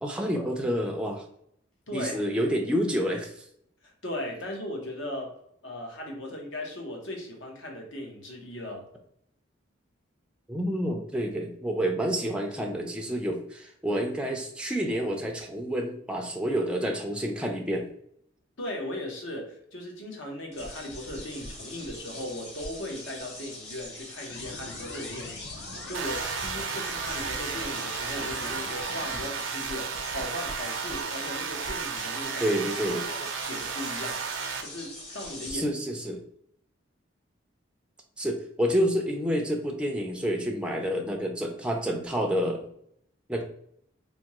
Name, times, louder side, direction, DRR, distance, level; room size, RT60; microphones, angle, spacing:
voice 1, 0.0-1.2 1.9-3.5 10.5-17.9 32.4-33.1 35.5-36.2 38.2-42.7 43.3-43.4, equal, 5° right, 1 dB, 0.3 m, -29 dB
voice 2, 1.9-2.2 3.8-5.3 5.6-8.8 18.6-32.5 33.1-34.2 34.6-35.7, left 1 dB, 75° left, 1 dB, 0.9 m, -38 dB
sound 1, 20.5-35.5, left 1 dB, 30° left, 0.8 m, -43 dB
sound 2, 24.3-29.3, left 3 dB, 60° left, 0.4 m, -43 dB
sound 3, 25.9-34.6, right 6 dB, 70° right, 0.5 m, -33 dB
3.4 x 2.7 x 2.9 m, 0.71 s
head